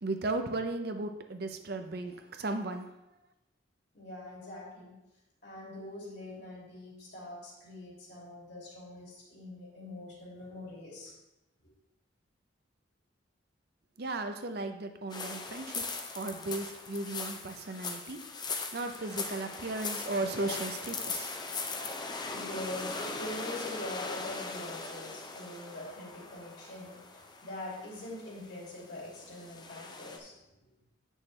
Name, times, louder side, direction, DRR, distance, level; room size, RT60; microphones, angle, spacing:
voice 1, 0.0-2.9 14.0-15.8 16.1-18.2 18.7-20.7 21.0-21.3, right 2 dB, 55° right, 7 dB, 0.6 m, -35 dB
voice 2, 3.9-5.0 5.4-11.1 20.4-20.5 21.1-21.2 22.3-30.4, left 1 dB, 60° left, -3 dB, 2.6 m, -43 dB
sound 1, 15.1-30.2, left 3 dB, 20° left, 0.6 m, -40 dB
8.9 x 6.4 x 3.3 m, 0.93 s
head